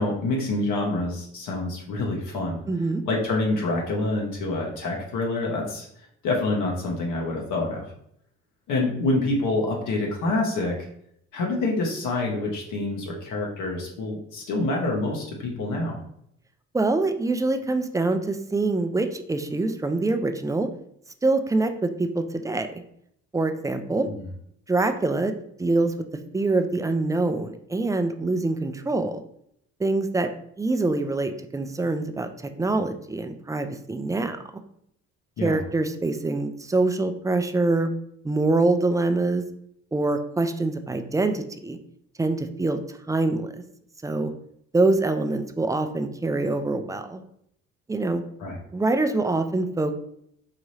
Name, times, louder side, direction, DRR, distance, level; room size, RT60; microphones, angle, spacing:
voice 1, 0.0-2.6 3.0-5.9 6.2-7.8 8.7-10.7 11.3-16.0 24.0-24.3 35.4-35.6 48.4-48.6, left 2 dB, 80° left, -1 dB, 1.0 m, -26 dB
voice 2, 2.7-3.0 16.7-20.7 21.2-22.8 23.3-24.1 24.7-25.3 25.6-26.1 26.3-29.2 29.8-30.3 30.6-32.3 32.6-34.6 35.4-37.9 38.2-39.4 39.9-41.8 42.2-42.8 43.1-43.5 44.0-44.3 44.7-47.2 47.9-48.2 48.7-50.0, right 2 dB, 10° right, 7 dB, 0.3 m, -24 dB
4.7 x 2.7 x 3.1 m, 0.72 s
cardioid pair, 90°, 30 cm